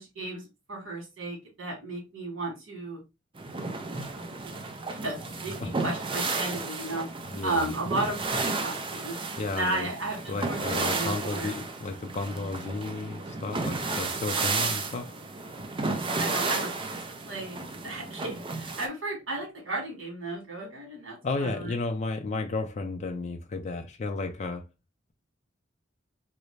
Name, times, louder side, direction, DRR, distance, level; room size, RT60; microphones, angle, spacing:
voice 1, 0.0-3.0 3.5-4.5 4.9-7.1 7.4-11.5 16.2-21.8, right 2 dB, 70° right, 1.9 m, -35 dB
sound 1, 3.4-18.9, right 3 dB, 25° right, 0.5 m, -33 dB
voice 2, 7.2-7.7 9.4-9.9 10.3-15.1 21.2-24.7, left 3 dB, 35° left, 0.4 m, -33 dB
3.2 x 2.6 x 3.1 m
head